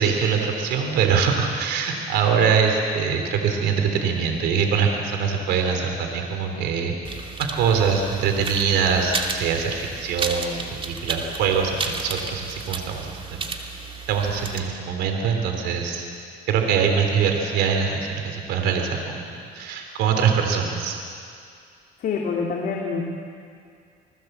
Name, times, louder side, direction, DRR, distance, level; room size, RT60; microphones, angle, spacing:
voice 1, 0.0-13.5 14.1-16.1 16.5-21.0, right 6 dB, 85° right, 4 dB, 3.4 m, -23 dB
sound 1, 7.0-14.6, right 4 dB, 30° right, 2.5 m, -33 dB
voice 2, 22.0-23.0, left 5 dB, 60° left, -1 dB, 2.9 m, -26 dB
27.5 x 19.5 x 8.0 m, 2.3 s
cardioid pair, 110°, 17 cm